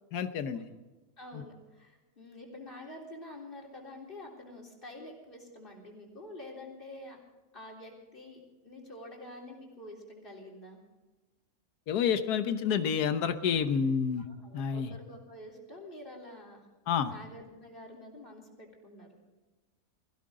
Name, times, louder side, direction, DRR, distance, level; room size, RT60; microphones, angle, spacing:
voice 1, 0.1-0.7 1.3-1.4 11.9-14.3 14.5-14.9 16.9-17.1, left 7 dB, 70° left, 9 dB, 1.5 m, -29 dB
voice 2, 1.2-7.2 7.5-10.8 14.3-16.7 17.0-19.1, left 1 dB, 30° left, 0 dB, 3.8 m, -47 dB
22.0 x 15.5 x 3.8 m, 1.2 s
omnidirectional pair, 1.7 m